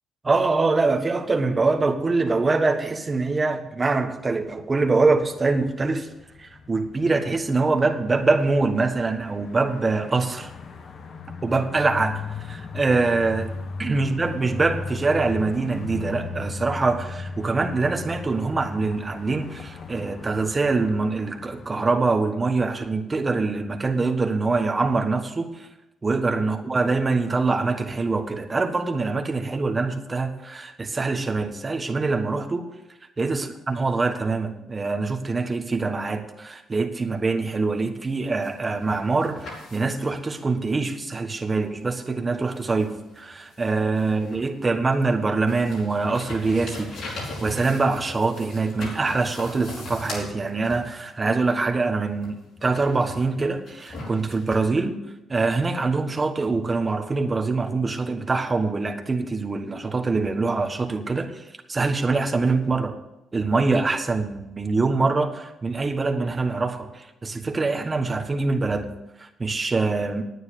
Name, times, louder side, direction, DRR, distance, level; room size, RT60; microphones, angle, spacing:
voice 1, 0.2-6.1 6.4-10.5 11.4-13.5 13.8-25.7 26.0-32.7 33.2-39.5 39.7-55.0 55.3-63.0 63.3-70.2, right 3 dB, 25° right, 5 dB, 1.4 m, -24 dB
sound 1, 4.1-21.7, left 4 dB, 55° left, 1.2 m, -37 dB
sound 2, 38.2-40.2 41.8-41.9 42.5-44.6 45.0-51.2 52.2-54.6, left 2 dB, 75° left, 4.8 m, -39 dB
9.7 x 9.4 x 6.8 m, 0.93 s
cardioid pair, 90°, 0 cm